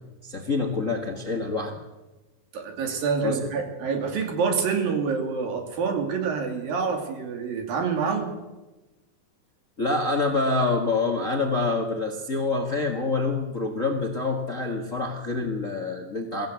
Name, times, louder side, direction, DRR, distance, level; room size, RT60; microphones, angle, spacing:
voice 1, 0.2-1.8 3.2-3.4 9.8-16.5, left 3 dB, 35° left, 4 dB, 1.4 m, -26 dB
voice 2, 2.5-8.3, right 5 dB, 75° right, 3 dB, 4.5 m, -27 dB
22.5 x 15.5 x 8.2 m, 1.1 s
omnidirectional pair, 4.1 m